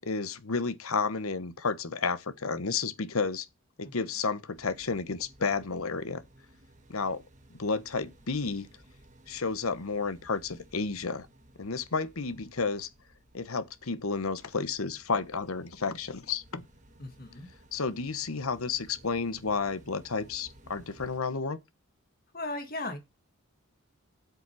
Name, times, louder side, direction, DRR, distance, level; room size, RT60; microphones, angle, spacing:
voice 1, 0.0-3.5 3.8-6.2 6.9-7.2 7.5-8.7 9.3-11.3 11.6-12.9 13.3-16.7 17.7-21.6, left 4 dB, 85° left, 1.1 m, -31 dB
sound 1, 4.5-21.2, right 1 dB, 35° right, 1.8 m, -57 dB
voice 2, 17.0-17.5 22.3-23.0, left 2 dB, 45° left, 2.3 m, -37 dB
8.0 x 7.0 x 6.1 m
head